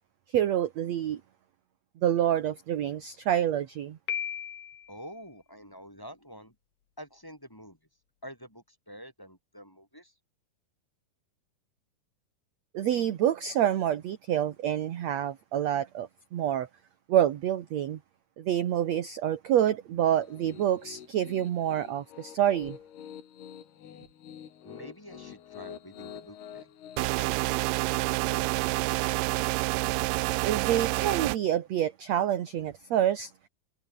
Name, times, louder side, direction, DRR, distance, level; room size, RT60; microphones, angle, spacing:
voice 1, 0.3-1.2 2.0-4.0 12.7-16.7 17.1-18.0 18.4-22.8 30.4-33.3, right 11 dB, 60° right, 2.0 m, -27 dB
Piano, 4.1-5.0, left 9 dB, 55° left, 2.0 m, -35 dB
voice 2, 4.9-6.5 7.0-7.8 8.2-10.1 24.6-26.7, equal, 5° left, 5.6 m, -48 dB
Piano 2, 20.2-27.1, left 9 dB, 85° left, 4.6 m, -47 dB
sound 1, 27.0-31.4, right 22 dB, 85° right, 1.9 m, -28 dB
omnidirectional pair, 4.4 m